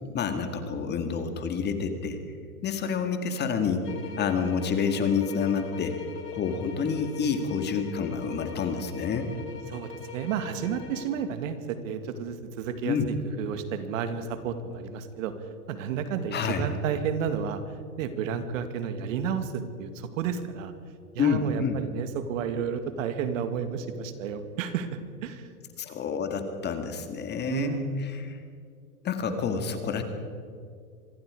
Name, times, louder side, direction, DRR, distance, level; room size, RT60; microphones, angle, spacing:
voice 1, 0.1-2.2 2.6-3.9 4.2-6.0 6.3-9.3 12.8-13.1 16.3-16.7 21.2-21.8 25.8-28.4 29.0-30.0, left 6 dB, 20° left, 7 dB, 2.0 m, -28 dB
sound 1, 3.8-11.2, left 6 dB, 85° left, 3.7 m, -42 dB
voice 2, 9.7-13.0 13.4-15.3 15.7-20.7 21.1-25.5 27.5-28.1, right 7 dB, 55° right, 9 dB, 2.3 m, -31 dB
25.5 x 21.0 x 5.0 m, 2.2 s
hypercardioid pair, 130°, 46 cm